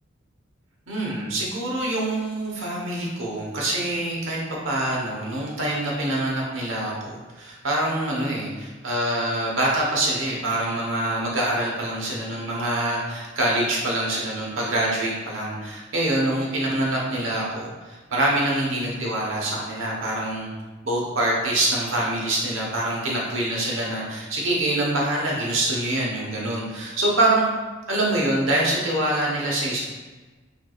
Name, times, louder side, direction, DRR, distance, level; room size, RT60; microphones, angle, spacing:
voice 1, 0.9-4.4 4.6-20.5 20.8-27.5 27.9-29.8, right 1 dB, 90° right, -3 dB, 1.1 m, -25 dB
4.7 x 3.6 x 2.4 m, 1.2 s
head